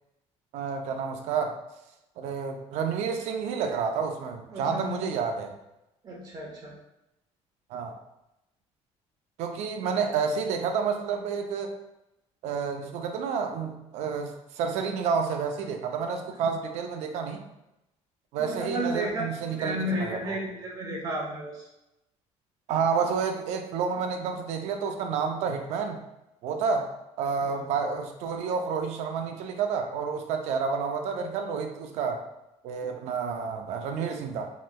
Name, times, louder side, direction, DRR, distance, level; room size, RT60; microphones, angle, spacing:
voice 1, 0.5-1.5 2.2-5.5 7.7-7.9 9.4-11.8 12.4-17.4 18.3-20.4 22.7-26.0 26.4-26.9 27.2-32.2 32.6-34.5, right 6 dB, 70° right, 5 dB, 0.4 m, -30 dB
voice 2, 4.5-5.1 6.0-6.7 18.4-21.7 27.4-27.6, equal, 30° right, -3 dB, 0.8 m, -33 dB
3.1 x 2.9 x 2.2 m, 0.90 s
cardioid pair, 165°, 12 cm